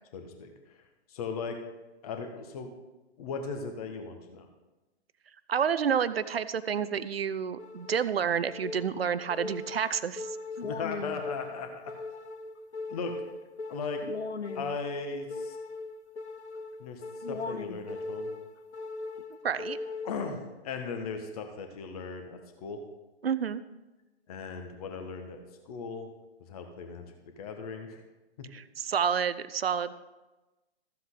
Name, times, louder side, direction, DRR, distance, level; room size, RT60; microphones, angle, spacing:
voice 1, 0.1-0.8 1.1-1.6 2.0-2.7 3.2-4.5 10.6-11.9 12.9-13.2 13.7-14.0 14.5-15.6 16.8-17.0 17.3-18.3 20.0-22.8 24.3-26.1 26.5-27.1 27.4-28.0, left 4 dB, 35° left, 5 dB, 1.4 m, -37 dB
voice 2, 5.5-10.4 19.4-19.8 23.2-23.6 28.5-29.9, right 7 dB, 65° right, 15 dB, 0.6 m, -29 dB
sound 1, 7.6-20.6, left 3 dB, 90° left, 0.7 m, -39 dB
14.5 x 7.7 x 3.9 m, 1.1 s
figure-of-eight pair, 125°, 33 cm